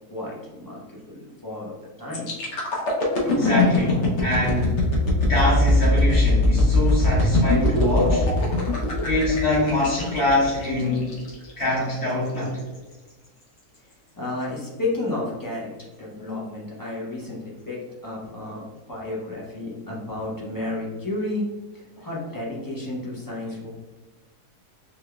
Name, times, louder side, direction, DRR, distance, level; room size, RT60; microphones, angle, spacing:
voice 1, 0.1-1.7 2.0-2.3 14.2-21.4 21.7-23.7, left 2 dB, 30° left, -5 dB, 0.3 m, -32 dB
sound 1, 2.1-11.9 12.4-12.6, left 1 dB, 55° left, 1.0 m, -21 dB
voice 2, 3.2-4.8 5.2-8.3 9.0-11.1 11.6-12.5 16.1-16.4 22.0-22.1, left 1 dB, 75° left, -10 dB, 1.7 m, -24 dB
4.0 x 3.4 x 2.2 m, 1.2 s
omnidirectional pair, 1.7 m